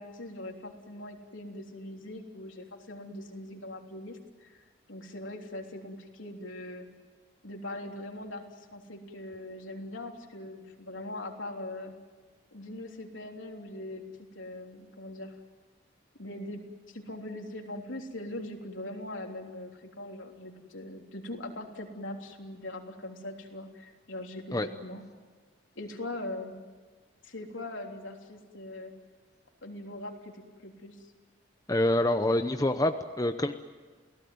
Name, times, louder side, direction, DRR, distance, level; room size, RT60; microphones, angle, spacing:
voice 1, 0.0-6.9 7.4-11.9 12.5-14.0 14.3-15.3 16.2-16.6 16.9-25.0 25.8-26.6 27.2-28.9 29.6-31.0, left 1 dB, 80° left, 2 dB, 3.5 m, -41 dB
voice 2, 31.7-33.5, left 1 dB, 20° left, 7 dB, 0.8 m, -26 dB
29.0 x 18.0 x 9.5 m, 1.4 s
head